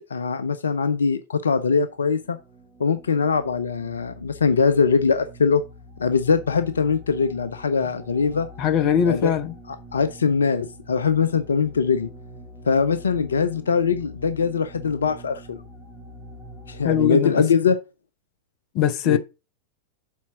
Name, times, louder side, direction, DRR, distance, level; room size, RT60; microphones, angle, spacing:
voice 1, 0.1-2.4 2.8-5.6 6.0-8.5 9.1-9.3 9.9-12.1 12.7-15.6 16.7-17.8 19.1-19.2, left 5 dB, 70° left, 0.5 m, -22 dB
sound 1, 1.9-17.1, equal, 10° right, 2.6 m, -44 dB
voice 2, 8.6-9.5 16.8-17.5 18.7-19.2, left 9 dB, 40° left, 0.8 m, -21 dB
7.3 x 4.3 x 5.8 m
figure-of-eight pair, 90°, 0 cm